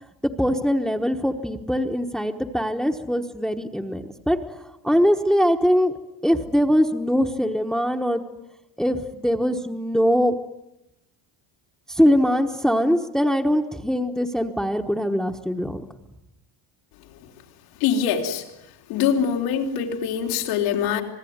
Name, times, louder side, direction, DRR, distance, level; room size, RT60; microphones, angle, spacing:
voice 1, 0.2-4.4 4.8-5.9 6.2-8.2 8.8-10.4 11.9-15.8, equal, ahead, 3 dB, 1.1 m, -22 dB
voice 2, 17.8-18.4 18.9-21.0, left 7 dB, 90° left, 1 dB, 3.9 m, -23 dB
26.5 x 20.0 x 9.5 m, 0.92 s
cardioid pair, 135°, 46 cm